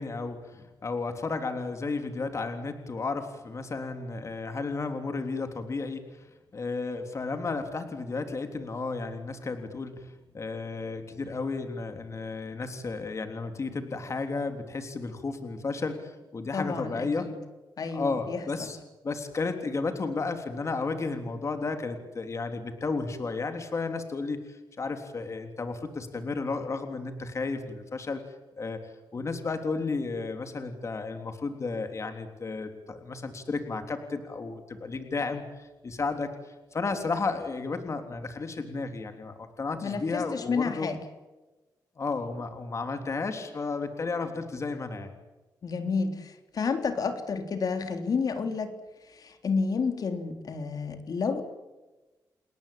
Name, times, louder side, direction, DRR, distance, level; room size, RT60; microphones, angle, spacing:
voice 1, 0.0-17.3 17.9-18.8 19.0-28.2 28.6-28.8 29.1-40.9 42.0-45.1, left 3 dB, 40° left, 6 dB, 3.4 m, -33 dB
voice 2, 16.5-17.4 17.8-18.4 39.8-41.0 45.6-48.7 49.1-51.4, left 5 dB, 60° left, 7 dB, 3.6 m, -30 dB
30.0 x 20.0 x 8.8 m, 1.1 s
cardioid pair, 95°, 7 cm